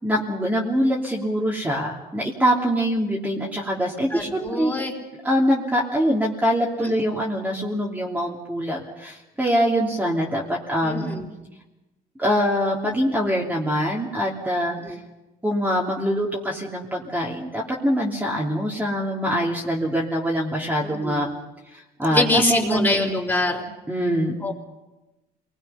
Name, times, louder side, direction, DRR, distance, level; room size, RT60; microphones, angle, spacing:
voice 1, 0.0-4.7 5.2-11.1 12.2-14.7 15.4-21.3 22.0-23.1 23.9-24.4, equal, 10° right, -4 dB, 3.0 m, -24 dB
voice 2, 4.1-4.9 6.8-6.9 10.8-11.3 14.8-15.0 20.8-21.2 22.1-23.7 24.4-24.5, left 2 dB, 10° left, 1 dB, 4.3 m, -24 dB
28.0 x 21.0 x 5.7 m, 1.0 s
cardioid pair, 110°, 17 cm